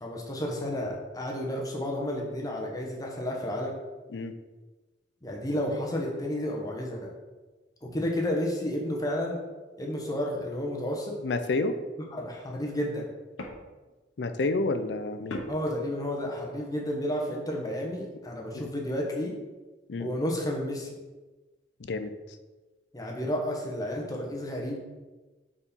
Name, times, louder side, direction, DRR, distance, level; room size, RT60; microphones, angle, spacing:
voice 1, 0.0-3.8 5.2-7.1 7.8-9.4 9.8-11.2 12.1-13.1 15.5-19.3 20.0-20.9 22.9-24.8, left 1 dB, 20° left, -1 dB, 1.0 m, -31 dB
voice 2, 11.2-11.8 14.2-15.4 18.5-18.7 19.9-20.1 21.8-22.1, left 3 dB, 60° left, 9 dB, 0.5 m, -29 dB
sound 1, 12.0-12.2 12.8-14.0 15.3-16.5, left 1 dB, 90° left, 0.8 m, -41 dB
4.6 x 4.3 x 5.2 m, 1.2 s
head